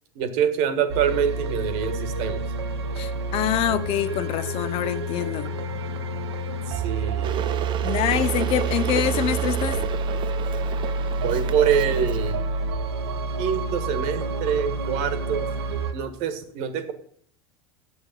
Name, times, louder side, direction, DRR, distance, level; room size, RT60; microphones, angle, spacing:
voice 1, 0.1-2.5 6.7-7.5 11.2-12.4 13.4-15.5 15.9-16.9, right 8 dB, 55° right, 10 dB, 1.4 m, -25 dB
sound 1, 0.9-15.9, right 3 dB, 70° right, 1.0 m, -28 dB
voice 2, 3.0-5.5 7.8-9.8, left 11 dB, 45° left, 14 dB, 0.7 m, -25 dB
Water / Boiling, 7.2-12.3, right 8 dB, 35° right, 0.7 m, -32 dB
9.6 x 7.3 x 5.2 m, 0.62 s
figure-of-eight pair, 80°, 14 cm